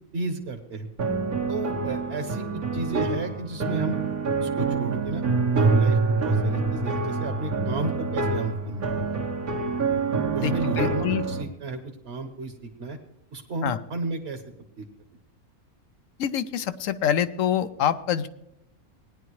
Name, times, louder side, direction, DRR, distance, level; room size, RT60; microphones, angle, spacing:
voice 1, 0.1-0.9 1.5-2.4 2.7-3.9 4.4-5.2 5.5-9.1 10.3-12.5 12.8-13.0 13.3-14.4 14.8-14.9, right 3 dB, 50° right, 5 dB, 1.3 m, -32 dB
sound 1, 1.0-11.4, right 4 dB, 90° right, 2.1 m, -26 dB
voice 2, 10.4-11.2 13.6-13.8 16.2-18.3, left 9 dB, 70° left, 13 dB, 1.0 m, -26 dB
18.5 x 10.5 x 3.1 m, 0.81 s
omnidirectional pair, 1.5 m